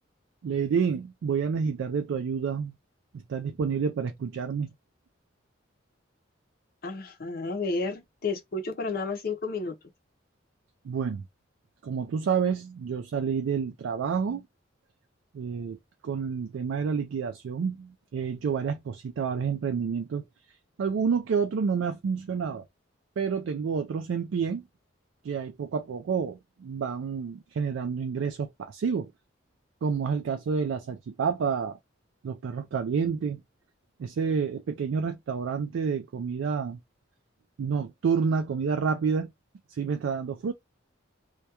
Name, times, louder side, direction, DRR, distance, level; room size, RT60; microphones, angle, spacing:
voice 1, 0.4-2.7 3.1-4.7 10.8-11.3 11.8-14.5 15.3-15.8 16.0-20.2 20.8-22.7 23.2-24.6 25.2-29.1 29.8-31.8 32.2-33.4 34.0-36.8 37.6-39.3 39.7-40.5, right 6 dB, 75° right, 0.3 m, -29 dB
voice 2, 6.8-9.7, left 3 dB, 45° left, 0.5 m, -31 dB
2.3 x 2.2 x 2.7 m
head